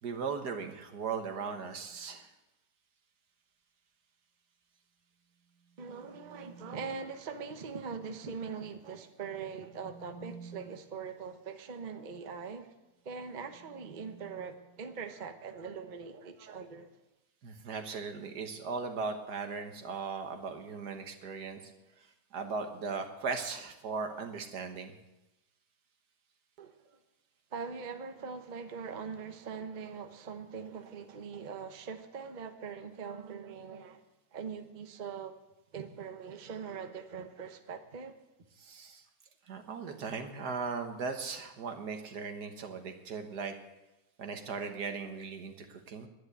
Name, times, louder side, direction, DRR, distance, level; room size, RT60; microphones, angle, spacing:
voice 1, 0.0-2.3 17.4-21.7 22.0-24.9 38.6-39.0 39.5-43.6 44.2-46.1, right 5 dB, 70° right, 1.8 m, -38 dB
sound 1, 1.8-2.2 5.3-7.2 9.3-11.0 13.0-15.3, right 6 dB, 5° right, 3.1 m, -54 dB
voice 2, 5.8-12.7 13.0-16.9 26.6-26.7 27.5-34.0 34.3-35.3 35.7-38.2, right 5 dB, 35° right, 0.9 m, -42 dB
11.0 x 10.5 x 8.0 m
omnidirectional pair, 1.8 m